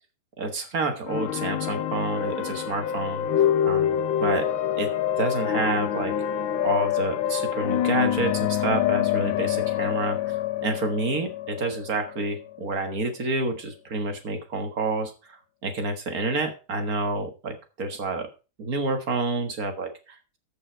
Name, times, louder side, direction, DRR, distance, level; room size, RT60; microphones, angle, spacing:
voice 1, 0.4-3.3 3.7-4.5 4.8-4.9 5.2-6.1 6.6-15.1 15.6-18.3 18.6-20.4, right 3 dB, 45° right, 6 dB, 1.7 m, -29 dB
sound 1, 1.0-12.7, left 10 dB, 70° left, 1.4 m, -26 dB
14.0 x 5.6 x 4.5 m, 0.32 s
omnidirectional pair, 2.4 m